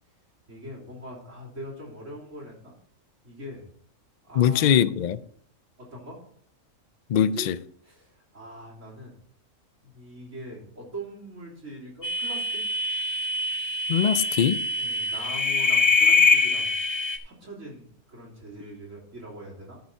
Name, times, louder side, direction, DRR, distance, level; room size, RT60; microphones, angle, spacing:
voice 1, 0.5-2.8 3.2-3.7 4.2-4.8 5.8-6.2 7.1-7.5 7.8-9.1 9.8-12.6 14.8-16.7 17.0-19.8, right 1 dB, 70° right, 3.6 m, -42 dB
voice 2, 4.4-5.2 7.1-7.6 13.9-14.6, left 9 dB, 70° left, 0.4 m, -22 dB
sound 1, 12.0-17.2, left 3 dB, 25° left, 0.8 m, -24 dB
13.5 x 5.6 x 4.4 m
omnidirectional pair, 1.3 m